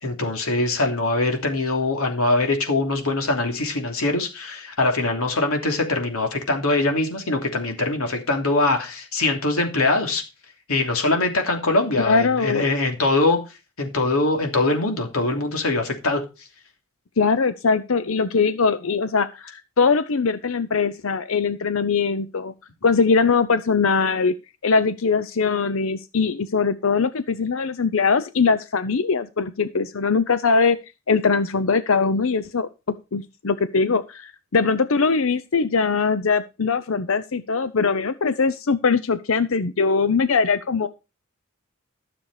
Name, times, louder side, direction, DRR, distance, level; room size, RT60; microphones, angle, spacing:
voice 1, 0.0-10.2 10.7-13.4 13.8-16.2, left 2 dB, 90° left, 3 dB, 3.0 m, -22 dB
voice 2, 12.0-12.7 17.2-22.5 22.8-24.4 24.6-30.8 31.1-40.9, left 4 dB, 75° left, 13 dB, 0.7 m, -21 dB
13.5 x 7.0 x 4.9 m, 0.28 s
head